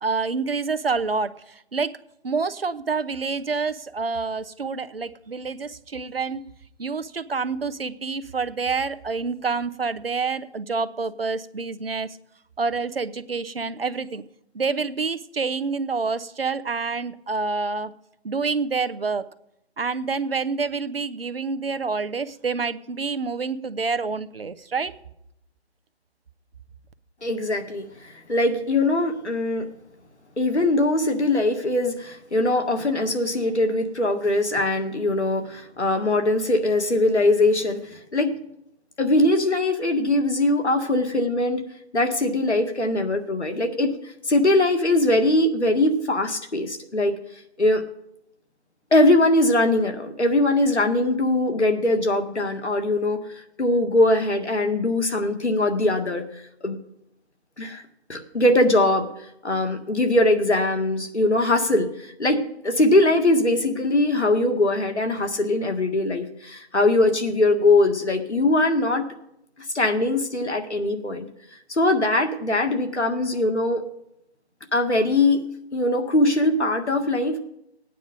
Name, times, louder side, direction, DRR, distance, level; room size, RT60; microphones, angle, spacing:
voice 1, 0.0-1.9 2.2-6.4 6.8-12.2 12.6-14.2 14.5-17.9 18.2-19.2 19.8-24.9, right 4 dB, 60° right, 13 dB, 1.0 m, -27 dB
voice 2, 27.2-29.7 30.4-38.3 39.0-41.6 41.9-43.9 44.3-47.2 47.6-47.8 48.9-53.2 53.6-56.8 57.6-57.8 58.1-59.1 59.4-69.1 69.7-71.3 71.7-73.8 74.7-75.4 75.7-77.4, left 2 dB, 85° left, 5 dB, 1.9 m, -21 dB
17.5 x 9.3 x 5.2 m, 0.84 s
figure-of-eight pair, 165°, 33 cm